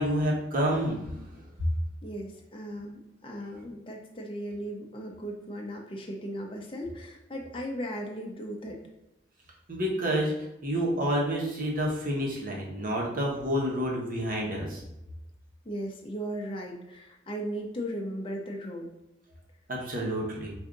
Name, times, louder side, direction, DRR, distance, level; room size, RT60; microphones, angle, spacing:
voice 1, 0.0-1.4 9.7-10.3 10.6-14.8 19.7-20.5, equal, 50° right, -2 dB, 1.1 m, -29 dB
voice 2, 2.0-8.8 15.6-18.9, equal, 30° left, 0 dB, 0.7 m, -37 dB
4.8 x 2.6 x 3.8 m, 0.93 s
head